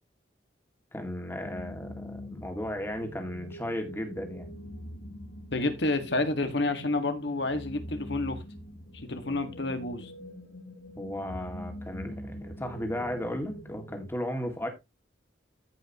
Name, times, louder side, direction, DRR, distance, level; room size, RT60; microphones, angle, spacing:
voice 1, 0.9-4.5 11.0-14.7, left 1 dB, 15° left, 2.0 m, -35 dB
sound 1, 1.4-14.1, equal, 90° left, 2.9 m, -44 dB
voice 2, 5.5-8.4 8.9-10.1, left 2 dB, 70° left, 1.7 m, -29 dB
14.5 x 5.5 x 2.9 m
head